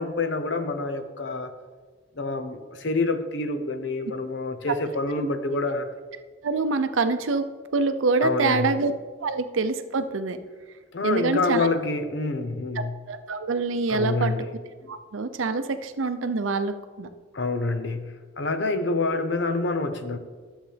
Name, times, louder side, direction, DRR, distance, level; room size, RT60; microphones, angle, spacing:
voice 1, 0.0-1.5 2.2-5.9 8.2-8.8 10.9-13.0 13.9-14.6 14.8-14.9 17.3-20.2, left 3 dB, 65° left, 8 dB, 0.7 m, -27 dB
voice 2, 6.4-7.4 7.7-8.9 9.2-10.4 11.0-11.7 13.1-14.3 14.9-17.1, right 3 dB, 85° right, 10 dB, 0.6 m, -25 dB
11.5 x 7.2 x 3.4 m, 1.5 s
head